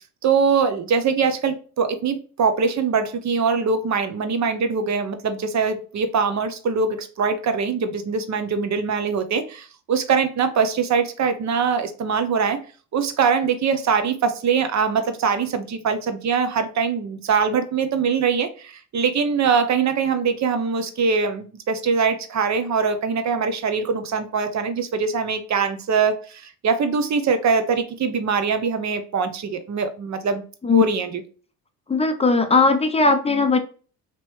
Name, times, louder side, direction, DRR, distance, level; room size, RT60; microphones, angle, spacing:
voice 1, 0.2-12.6 12.9-30.4 30.7-31.2, right 5 dB, 40° right, 9 dB, 0.7 m, -22 dB
voice 2, 31.9-33.6, left 3 dB, 15° left, 6 dB, 0.6 m, -18 dB
3.0 x 2.9 x 3.1 m, 0.38 s
supercardioid pair, 75°, 44 cm